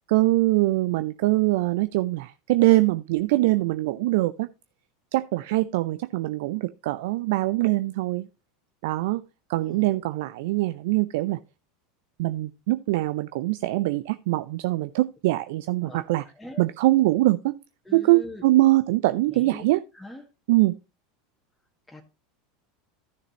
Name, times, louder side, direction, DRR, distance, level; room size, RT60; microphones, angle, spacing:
voice 1, 0.1-4.5 5.1-8.3 8.8-9.2 9.5-11.4 12.2-16.2 16.6-17.6 17.9-19.8 20.5-20.8, right 18 dB, 60° right, 0.4 m, -23 dB
voice 2, 15.8-16.6 17.8-18.4 19.3-19.6 19.9-20.2 21.9-22.0, left 1 dB, 5° left, 1.7 m, -42 dB
14.0 x 6.6 x 2.9 m
figure-of-eight pair, 80°, 0 cm